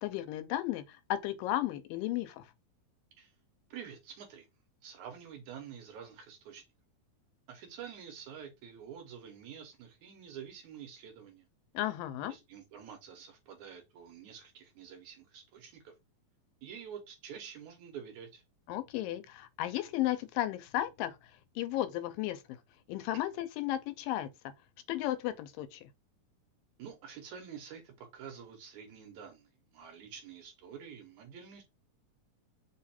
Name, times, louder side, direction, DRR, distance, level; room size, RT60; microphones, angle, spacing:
voice 1, 0.0-2.4 11.7-12.3 18.7-21.2 21.6-22.4 22.9-24.3 24.9-25.8, left 14 dB, 85° left, 2.3 m, -34 dB
voice 2, 3.7-4.5 4.8-6.6 7.5-11.5 12.3-15.9 16.6-18.4 26.8-31.6, right 8 dB, 70° right, 2.1 m, -48 dB
5.2 x 2.4 x 4.2 m
omnidirectional pair, 4.0 m